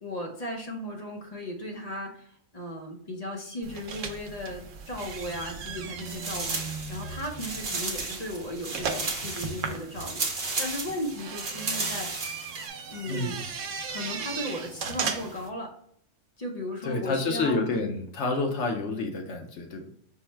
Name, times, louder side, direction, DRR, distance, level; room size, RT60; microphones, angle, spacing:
voice 1, 0.0-12.1 12.9-13.4 13.9-15.7 16.4-17.6, left 1 dB, 40° left, 1 dB, 0.6 m, -36 dB
sound 1, 3.6-15.5, right 5 dB, 80° right, 0.9 m, -37 dB
sound 2, 4.9-5.7 6.0-12.7, right 3 dB, 50° right, 0.9 m, -34 dB
voice 2, 13.1-13.4 16.8-19.9, left 3 dB, 65° left, 3 dB, 1.0 m, -29 dB
5.4 x 2.1 x 4.4 m, 0.66 s
omnidirectional pair, 1.3 m